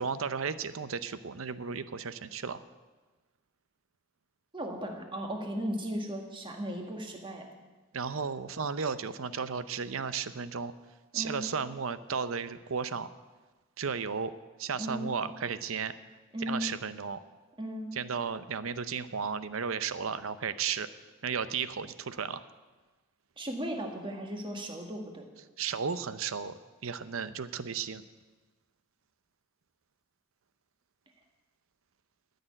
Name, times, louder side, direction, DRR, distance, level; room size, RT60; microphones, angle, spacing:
voice 1, 0.0-2.6 7.9-10.7 11.1-13.1 13.8-14.3 14.6-15.9 16.5-17.2 17.9-20.9 21.2-22.4 25.6-28.0, right 6 dB, 70° right, 13 dB, 0.7 m, -34 dB
voice 2, 4.5-7.5 11.1-11.5 14.8-15.1 16.3-16.7 17.6-17.9 23.4-25.3, equal, 25° right, 2 dB, 1.8 m, -36 dB
13.0 x 6.7 x 9.9 m, 1.3 s
head